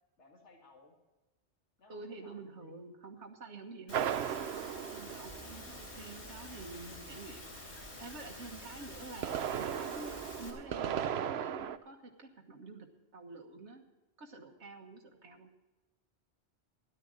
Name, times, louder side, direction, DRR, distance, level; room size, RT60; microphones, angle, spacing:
voice 1, 0.2-0.9 1.8-2.7, left 3 dB, 85° left, 2 dB, 2.3 m, -60 dB
voice 2, 1.9-4.1 4.9-7.5 7.8-12.9 13.1-13.8 14.2-15.5, right 3 dB, 90° right, 1 dB, 1.6 m, -48 dB
Engine / Mechanisms, 3.9-10.5, left 1 dB, 70° left, 3.7 m, -48 dB
sound 1, 3.9-6.0 8.9-11.8, right 9 dB, 70° right, 0.9 m, -36 dB
sound 2, 5.3-11.1, left 2 dB, 15° right, 3.0 m, -58 dB
13.0 x 11.0 x 6.4 m, 1.1 s
omnidirectional pair, 1.1 m